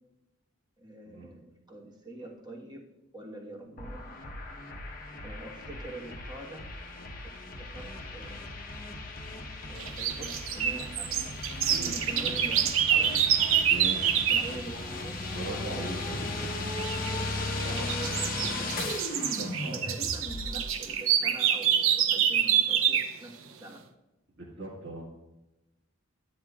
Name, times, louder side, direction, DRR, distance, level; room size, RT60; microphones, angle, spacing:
voice 1, 0.8-2.9 3.1-4.0 5.2-6.7 7.2-8.4 9.6-13.6 14.1-16.6 17.3-18.3 19.6-23.8, right 1 dB, 20° right, -2 dB, 1.3 m, -45 dB
sound 1, 3.8-20.7, left 2 dB, 45° left, 0.9 m, -37 dB
sound 2, 9.8-14.5 16.8-17.1 17.6-23.2, right 9 dB, 75° right, 0.6 m, -27 dB
voice 2, 11.7-12.5 13.7-14.2 15.3-16.7 17.1-18.1 18.4-18.5 19.4-19.8 24.4-25.1, right 1 dB, 55° right, -2 dB, 1.6 m, -40 dB
10.5 x 9.2 x 2.4 m, 0.99 s
head